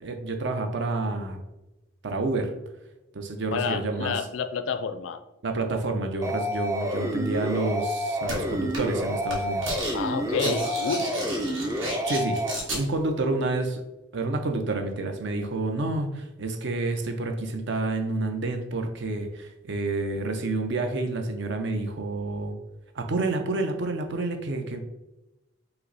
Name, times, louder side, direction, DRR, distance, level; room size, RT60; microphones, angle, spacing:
voice 1, 0.0-1.4 2.0-2.5 3.1-4.1 5.4-9.7 10.4-10.6 12.1-13.8 14.1-22.5 23.0-24.8, right 2 dB, 60° right, 5 dB, 0.6 m, -29 dB
voice 2, 3.5-5.2 9.9-11.2, left 6 dB, 70° left, 10 dB, 0.4 m, -29 dB
sound 1, 6.2-12.5, equal, 15° right, 0.3 m, -29 dB
sound 2, 8.3-8.4 8.7-9.0 9.3-9.9 10.2-12.8, right 1 dB, 75° right, 1.3 m, -33 dB
5.5 x 2.0 x 3.9 m, 0.98 s
head